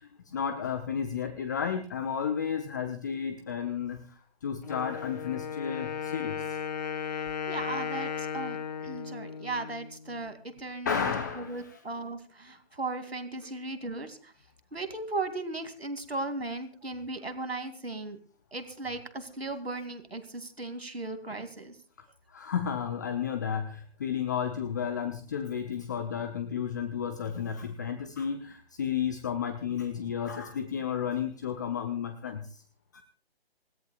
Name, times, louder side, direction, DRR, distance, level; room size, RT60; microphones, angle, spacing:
voice 1, 0.0-6.6 10.8-11.8 22.3-32.6 32.9-33.0, left 7 dB, 20° left, 8 dB, 0.7 m, -32 dB
Wind instrument woodwind instrument, 4.6-10.4, left 7 dB, 45° left, 1.3 m, -36 dB
voice 2, 7.5-14.3 14.7-18.2 18.5-21.7, right 2 dB, 80° right, 8 dB, 2.7 m, -37 dB
27.0 x 14.5 x 2.4 m, 0.42 s
figure-of-eight pair, 145°, 31 cm